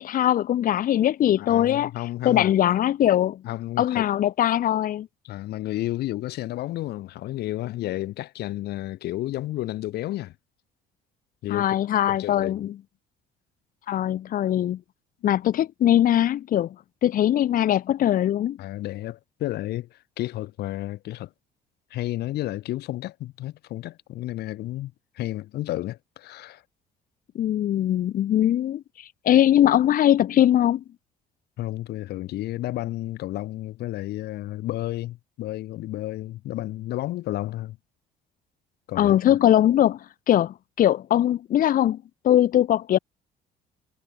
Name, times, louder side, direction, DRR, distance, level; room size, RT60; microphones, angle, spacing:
voice 1, 0.0-1.9 2.2-3.4 3.8-5.1 11.5-12.7 13.9-14.8 15.2-16.7 17.0-18.6 27.3-30.8 39.0-40.0 40.3-43.0, left 11 dB, 55° left, 1.2 m, -21 dB
voice 2, 1.4-2.5 3.4-4.1 5.2-10.3 11.4-12.6 18.6-21.3 21.9-26.6 31.6-37.8 38.9-39.2, left 15 dB, 75° left, 2.0 m, -32 dB
cardioid pair, 110°, 17 cm